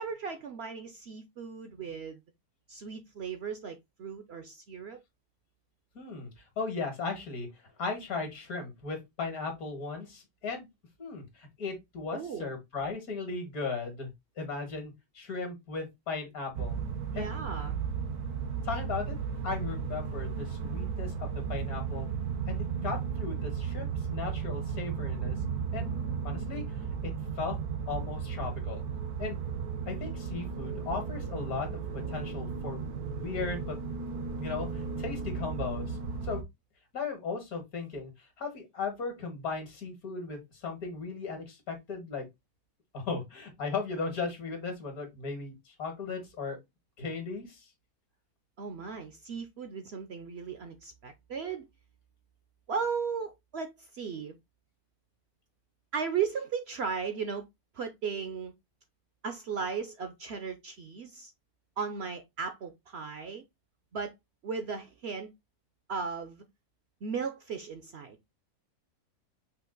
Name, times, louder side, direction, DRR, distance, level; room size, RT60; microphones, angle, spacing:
voice 1, 0.0-2.2 2.7-5.0 12.1-12.5 17.1-17.8 48.6-51.7 52.7-54.4 55.9-57.4 57.7-58.5 59.2-61.3 61.8-63.4 63.9-64.1 64.4-65.3 65.9-66.4 67.0-68.2, right 6 dB, 60° right, 0.7 m, -36 dB
voice 2, 6.0-7.5 7.8-10.7 11.0-14.1 14.4-16.8 17.1-17.3 18.6-19.2 19.4-22.1 22.5-25.4 25.7-26.6 27.0-27.1 27.4-27.6 27.9-28.8 29.2-29.4 29.9-32.8 33.1-33.8 34.4-36.0 36.2-36.4 36.9-42.3 42.9-46.6 47.0-47.7, left 4 dB, 75° left, 2.1 m, -37 dB
sound 1, 16.5-36.4, right 6 dB, 85° right, 1.3 m, -35 dB
5.7 x 2.4 x 3.8 m
omnidirectional pair, 1.6 m